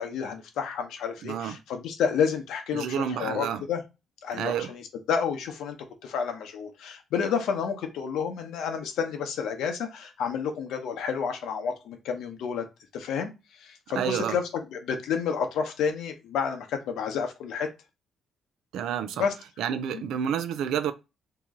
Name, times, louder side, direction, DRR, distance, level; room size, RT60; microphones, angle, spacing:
voice 1, 0.0-3.8 4.2-5.8 6.0-12.6 12.9-14.4 14.7-17.7 19.2-19.3 19.9-20.0, left 6 dB, 80° left, 0.9 m, -30 dB
voice 2, 1.2-1.6 2.7-3.6 4.4-4.7 14.0-14.4 18.7-19.3 19.6-20.9, right 8 dB, 85° right, 0.4 m, -29 dB
3.0 x 2.9 x 3.6 m
cardioid pair, 90°, 0 cm